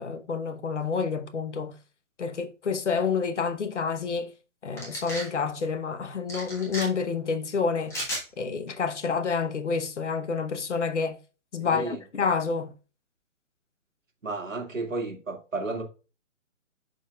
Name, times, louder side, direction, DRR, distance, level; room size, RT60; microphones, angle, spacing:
voice 1, 0.0-1.8 2.2-4.3 4.6-8.0 8.4-11.2 11.5-12.7, left 5 dB, 60° left, 0.9 m, -28 dB
sound 1, 4.8-5.3 6.3-6.9 7.9-8.2, equal, 5° left, 1.3 m, -33 dB
voice 2, 11.6-12.0 14.2-15.8, right 3 dB, 75° right, 2.0 m, -32 dB
11.5 x 3.9 x 2.3 m
figure-of-eight pair, 135°, 39 cm